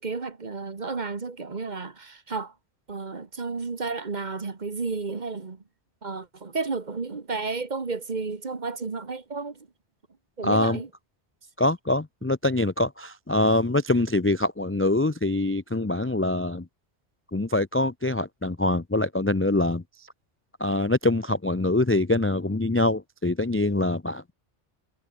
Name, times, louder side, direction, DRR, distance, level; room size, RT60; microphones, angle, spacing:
voice 1, 0.0-2.5 2.9-5.6 6.0-9.7 10.4-10.9, right 4 dB, 40° right, 1.5 m, -32 dB
voice 2, 10.4-10.8 11.6-16.7 17.3-20.1 20.6-24.2, left 2 dB, 15° left, 0.5 m, -24 dB
omnidirectional pair, 1.2 m